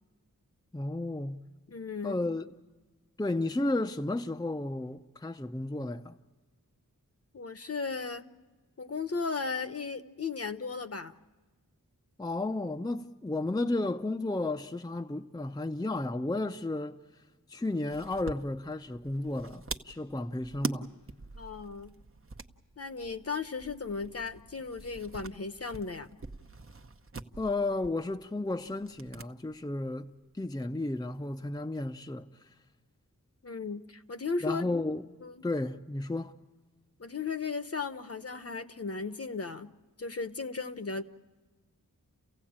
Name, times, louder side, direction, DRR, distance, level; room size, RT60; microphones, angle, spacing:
voice 1, 0.7-1.4 2.0-2.5 3.2-6.2 12.2-17.0 17.5-20.9 27.4-30.1 30.3-32.3 34.4-35.0 35.4-36.3, left 2 dB, 10° left, 0.6 m, -33 dB
voice 2, 1.7-2.2 7.3-8.2 8.8-11.1 21.4-22.0 22.8-26.1 33.4-34.6 35.2-35.4 37.0-39.7 40.0-41.0, left 4 dB, 45° left, 1.0 m, -36 dB
sound 1, 17.9-29.3 29.6-29.7 30.9-31.6, right 4 dB, 40° right, 0.9 m, -44 dB
29.5 x 16.5 x 8.7 m
wide cardioid pair, 100°, 33 cm